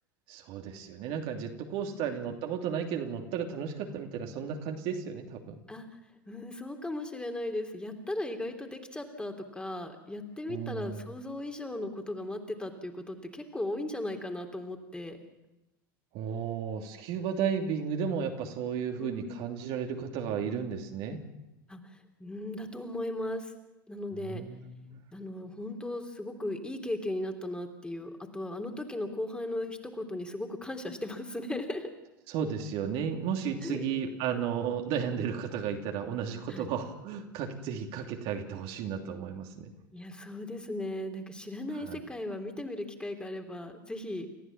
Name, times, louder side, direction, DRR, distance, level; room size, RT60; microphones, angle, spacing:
voice 1, 0.3-5.6 10.5-11.1 16.1-21.2 24.1-25.0 32.3-39.7 41.8-42.0, right 7 dB, 50° right, 3 dB, 3.0 m, -34 dB
voice 2, 6.3-15.2 19.0-19.4 21.7-23.5 23.9-24.4 25.1-31.9 33.6-33.8 36.5-36.7 39.9-44.3, left 1 dB, 10° left, 4 dB, 3.4 m, -37 dB
29.5 x 14.5 x 7.4 m, 0.97 s
figure-of-eight pair, 85°, 12 cm